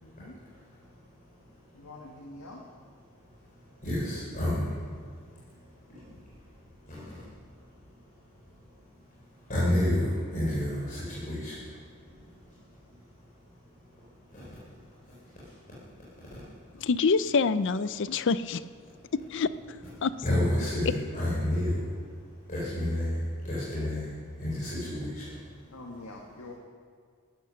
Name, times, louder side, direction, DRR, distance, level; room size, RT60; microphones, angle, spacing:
voice 1, 0.0-0.4 1.7-2.6 25.7-26.5, left 2 dB, 80° left, 0 dB, 1.6 m, -45 dB
voice 2, 3.8-4.8 5.9-6.0 6.9-7.2 9.5-11.7 12.1-12.2 14.3-14.6 15.4-15.5 19.7-19.9 20.2-22.0 22.5-24.1 24.4-25.4, left 1 dB, 40° left, -8 dB, 4.0 m, -30 dB
voice 3, 16.8-18.6 19.1-19.5 20.0-20.1, left 4 dB, 55° left, 15 dB, 0.5 m, -26 dB
15.0 x 11.5 x 6.4 m, 2.2 s
head